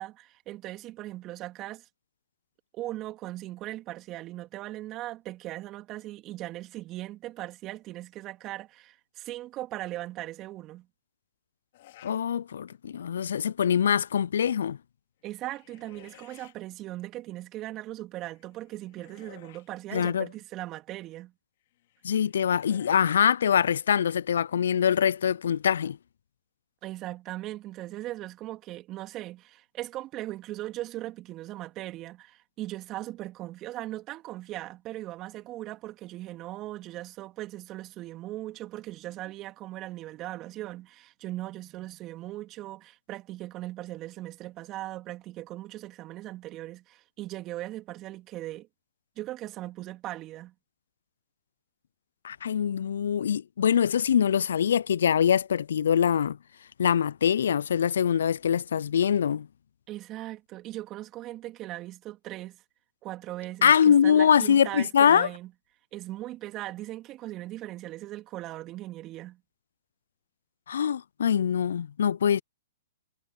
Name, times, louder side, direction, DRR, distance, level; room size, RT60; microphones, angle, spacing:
voice 1, 0.0-1.9 2.7-10.9 15.2-21.3 26.8-48.7 49.2-50.5 59.9-62.6 63.0-65.5 65.9-69.4, right 15 dB, 30° right, 3.2 m, -39 dB
sound 1, 11.7-12.2 12.7-13.2 15.2-16.5 18.3-19.7 21.7-23.1, left 16 dB, 55° left, 4.9 m, -54 dB
voice 2, 12.0-14.8 19.9-20.3 22.0-26.0 52.2-56.4 56.8-59.5 63.6-65.3 70.7-72.4, left 8 dB, 70° left, 0.4 m, -23 dB
hypercardioid pair, 125°, 0 cm